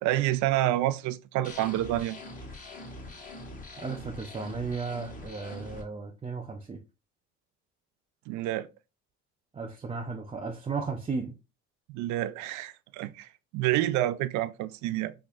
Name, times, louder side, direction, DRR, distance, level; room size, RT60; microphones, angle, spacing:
voice 1, 0.0-2.2 8.3-8.7 11.9-13.3 13.5-15.1, right 14 dB, 80° right, 0.4 m, -28 dB
sound 1, 1.4-5.8, left 2 dB, 30° left, 1.0 m, -43 dB
voice 2, 3.8-6.8 9.5-11.3, right 4 dB, 20° right, 0.4 m, -35 dB
4.2 x 2.8 x 2.4 m
cardioid pair, 110°, 29 cm